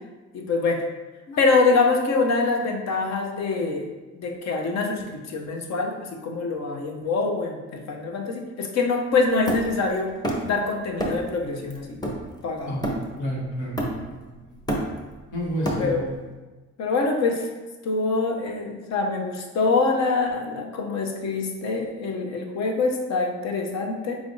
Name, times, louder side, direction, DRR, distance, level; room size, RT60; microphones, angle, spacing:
voice 1, 0.3-0.8 1.3-3.8 4.2-10.1 10.4-12.0 12.4-12.7 15.8-16.1 16.8-17.5 17.8-24.2, left 3 dB, 60° left, 2 dB, 0.7 m, -25 dB
Hammer, 9.5-10.6 11.0-11.3 11.7-13.3 13.8-14.2 14.5-16.2, right 1 dB, 15° left, 0.8 m, -29 dB
voice 2, 13.2-14.5 15.3-16.2, equal, 85° left, -4 dB, 1.4 m, -30 dB
4.8 x 3.3 x 2.7 m, 1.2 s
cardioid pair, 90°, 30 cm